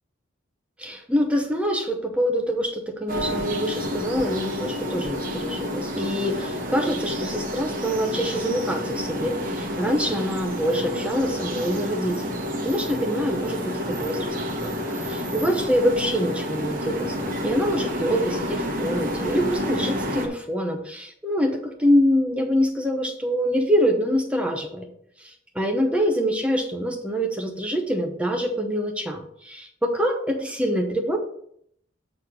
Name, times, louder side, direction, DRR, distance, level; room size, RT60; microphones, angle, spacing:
voice 1, 0.8-14.7 15.0-24.9 25.2-31.2, equal, 5° right, 2 dB, 0.8 m, -25 dB
sound 1, 3.1-20.3, equal, 45° right, 1.4 m, -29 dB
8.3 x 4.2 x 6.2 m, 0.69 s
head